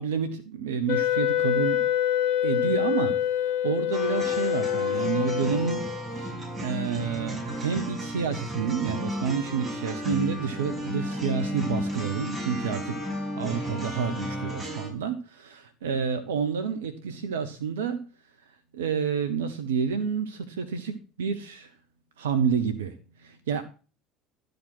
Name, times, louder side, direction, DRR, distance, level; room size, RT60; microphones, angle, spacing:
voice 1, 0.0-1.9 2.4-13.0 13.4-18.1 18.7-21.7 22.2-23.6, right 6 dB, 70° right, 10 dB, 0.9 m, -29 dB
Wind instrument woodwind instrument, 0.9-6.1, left 11 dB, 55° left, 1.2 m, -26 dB
sound 1, 3.9-14.9, equal, 25° right, 6.3 m, -34 dB
12.0 x 5.3 x 6.1 m, 0.35 s
figure-of-eight pair, 65°, 0 cm